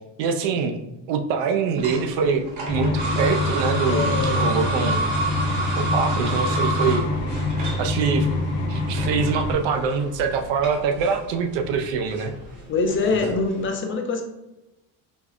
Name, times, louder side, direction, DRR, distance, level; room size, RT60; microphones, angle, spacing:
voice 1, 0.2-5.0 5.7-7.1 7.8-12.4, right 5 dB, 75° right, 6 dB, 0.6 m, -24 dB
sound 1, 1.8-13.7, right 2 dB, 40° right, 1.1 m, -30 dB
sound 2, 2.7-9.5, left 2 dB, 55° left, 1.0 m, -25 dB
voice 2, 3.8-4.5 12.7-14.2, left 4 dB, 30° left, 3 dB, 0.4 m, -24 dB
5.2 x 2.0 x 2.4 m, 0.97 s
cardioid pair, 130°, 44 cm